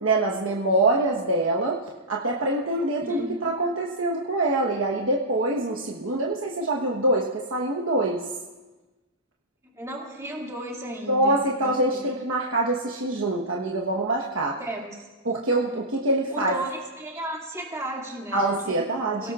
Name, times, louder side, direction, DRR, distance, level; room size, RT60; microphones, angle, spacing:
voice 1, 0.0-1.8 2.1-8.3 11.1-14.6 15.2-16.6 18.3-19.3, right 2 dB, 70° right, -2 dB, 1.2 m, -25 dB
voice 2, 2.7-3.4 9.6-12.1 14.6-15.1 15.6-15.8 16.3-19.3, right 1 dB, 15° right, -2 dB, 2.4 m, -35 dB
30.0 x 17.5 x 2.5 m, 1.2 s
head